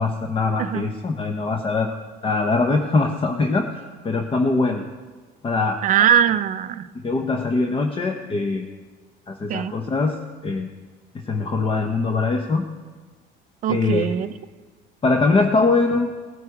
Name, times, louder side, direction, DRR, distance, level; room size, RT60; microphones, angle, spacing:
voice 1, 0.0-2.0 2.2-4.8 5.4-5.8 6.9-8.7 9.3-10.7 11.1-12.7 13.7-14.1 15.0-16.1, left 3 dB, 25° left, 5 dB, 0.8 m, -22 dB
voice 2, 5.8-6.9 9.5-9.8 13.6-14.3, right 9 dB, 40° right, 11 dB, 0.5 m, -21 dB
17.5 x 9.7 x 4.8 m, 1.4 s
cardioid pair, 130°, 21 cm